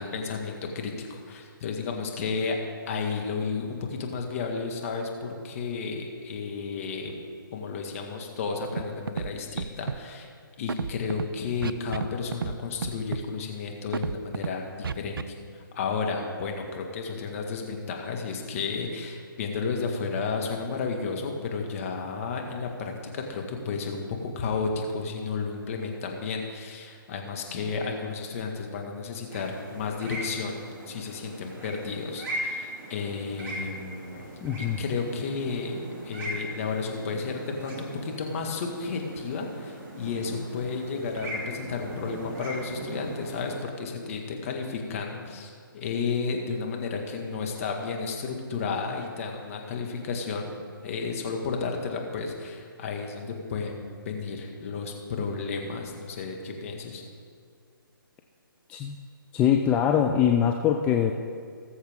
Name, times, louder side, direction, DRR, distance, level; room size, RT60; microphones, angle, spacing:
voice 1, 0.0-2.6 2.9-7.1 7.5-10.3 10.6-24.0 24.3-30.6 30.9-34.3 34.6-35.8 36.0-50.5 50.8-57.0, left 4 dB, 40° left, 2 dB, 1.7 m, -32 dB
Scratching (performance technique), 8.8-8.9 9.1-9.3 9.6-10.0 10.7-11.2 11.6-12.1 12.3-12.5 12.8-13.2 13.9-14.5 14.8-15.2, right 6 dB, 75° right, 0.5 m, -30 dB
sound 1, 29.3-43.6, right 1 dB, 20° right, 2.1 m, -39 dB
voice 2, 34.4-34.8 58.7-58.9 59.3-61.1, left 9 dB, 10° left, 3 dB, 0.3 m, -23 dB
19.5 x 7.2 x 3.7 m, 2.1 s
figure-of-eight pair, 145°, 12 cm